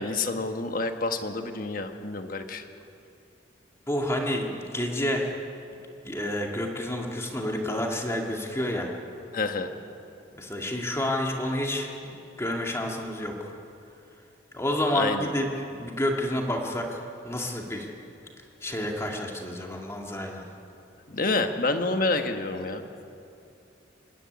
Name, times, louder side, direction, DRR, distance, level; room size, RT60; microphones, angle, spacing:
voice 1, 0.0-2.6 9.3-9.7 14.9-15.3 21.1-22.8, left 3 dB, 50° left, 6 dB, 1.3 m, -28 dB
voice 2, 3.9-5.3 6.0-8.9 10.3-13.5 14.5-15.5 15.7-17.9 18.6-20.4, left 1 dB, 15° left, 0 dB, 2.2 m, -29 dB
26.0 x 12.0 x 9.7 m, 2.7 s
head